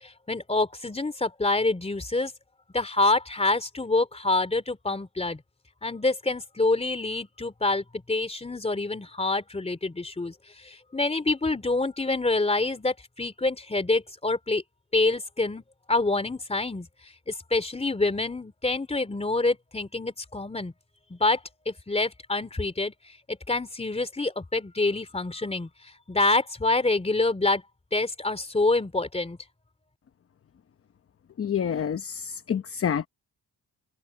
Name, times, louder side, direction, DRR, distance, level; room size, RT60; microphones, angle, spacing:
voice 1, 0.3-2.3 2.7-5.4 5.8-10.3 10.9-14.6 14.9-15.6 15.9-16.9 17.5-20.7 21.1-21.4 21.7-22.9 23.3-25.7 26.1-27.6 27.9-29.4, left 2 dB, 15° left, 3.3 m, -26 dB
voice 2, 31.4-33.1, left 8 dB, 35° left, 0.9 m, -28 dB
cardioid pair, 115°, 38 cm